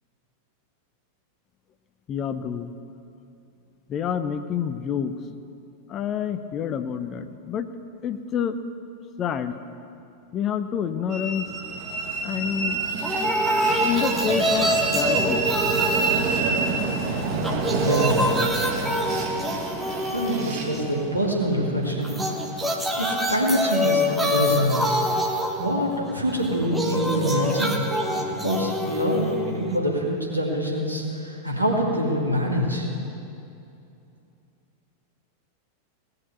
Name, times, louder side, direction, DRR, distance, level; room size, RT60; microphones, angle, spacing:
voice 1, 2.1-2.7 3.9-5.1 5.9-7.7 8.0-8.6 9.2-9.6 10.3-11.5 12.2-12.8 13.8-15.4, left 8 dB, 30° left, 10 dB, 0.7 m, -28 dB
Train, 11.1-23.6, right 4 dB, 40° right, 2.0 m, -28 dB
sound 1, 13.0-17.0 17.3-21.1 22.0-30.0, equal, 5° right, 1.3 m, -26 dB
voice 2, 17.7-18.5 20.1-22.2 23.0-25.0 25.6-27.7 28.4-32.9, equal, 85° right, -2 dB, 2.3 m, -25 dB
18.5 x 6.9 x 8.1 m, 2.7 s
figure-of-eight pair, 90°, 0 cm